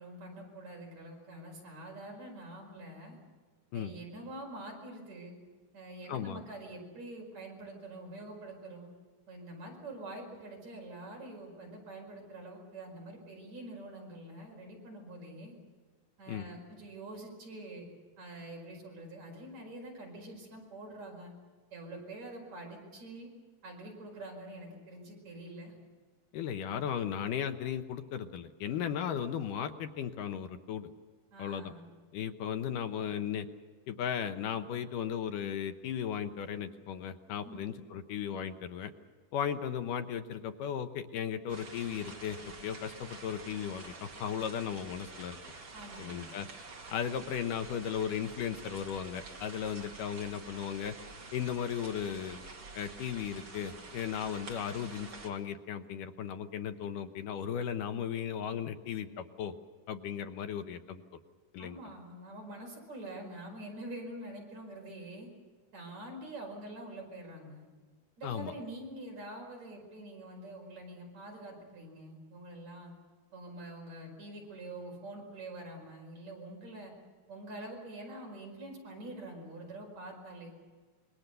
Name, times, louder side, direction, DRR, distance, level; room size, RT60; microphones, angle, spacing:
voice 1, 0.0-3.2 3.7-5.4 5.7-8.9 9.3-15.5 16.2-17.9 18.2-21.3 21.7-23.3 23.6-25.7 31.3-31.9 37.4-37.7 45.7-46.3 61.6-65.3 65.7-67.7 68.2-72.9 73.3-76.9 77.3-80.5, right 1 dB, 55° right, 0 dB, 6.2 m, -46 dB
voice 2, 6.1-6.4 16.3-16.5 26.3-30.9 31.4-31.7 32.1-33.5 33.9-38.9 39.3-45.4 46.0-46.5 46.9-51.0 51.3-52.4 52.7-59.5 59.9-61.0 61.5-61.8 68.2-68.5, left 8 dB, 80° left, 8 dB, 2.7 m, -36 dB
sound 1, 41.5-55.3, right 3 dB, 40° right, 3.1 m, -48 dB
26.5 x 22.5 x 6.8 m, 1.5 s
omnidirectional pair, 3.7 m